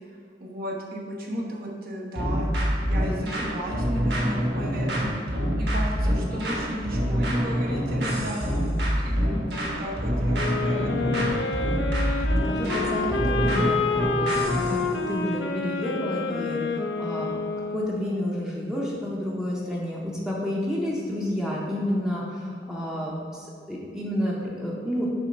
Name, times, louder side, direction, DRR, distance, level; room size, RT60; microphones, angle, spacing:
voice 1, 0.4-2.5 2.8-5.3 5.6-8.4 9.0-11.2, equal, 55° right, -2 dB, 1.0 m, -34 dB
sound 1, 2.2-14.8, equal, 70° right, 1.3 m, -26 dB
sound 2, 10.3-18.2, left 4 dB, 85° left, 0.5 m, -28 dB
voice 2, 12.4-14.3 14.5-17.4 17.7-25.1, equal, 5° right, -5 dB, 0.7 m, -30 dB
7.0 x 3.4 x 5.2 m, 2.2 s
head